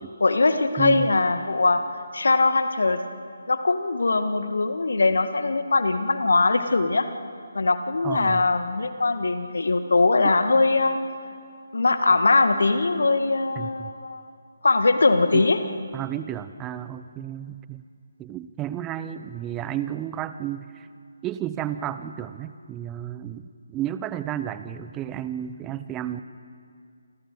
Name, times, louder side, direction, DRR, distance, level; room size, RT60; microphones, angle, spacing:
voice 1, 0.2-1.8 2.1-3.0 3.5-7.1 7.5-11.0 11.7-14.2 14.6-15.6, left 3 dB, 65° left, 9 dB, 1.8 m, -21 dB
voice 2, 0.8-1.1 8.0-8.5 13.6-13.9 15.3-15.5 15.9-17.8 18.2-20.9 21.2-26.2, right 11 dB, 15° right, 12 dB, 0.8 m, -32 dB
29.5 x 26.0 x 4.8 m, 2.3 s
figure-of-eight pair, 145°, 0 cm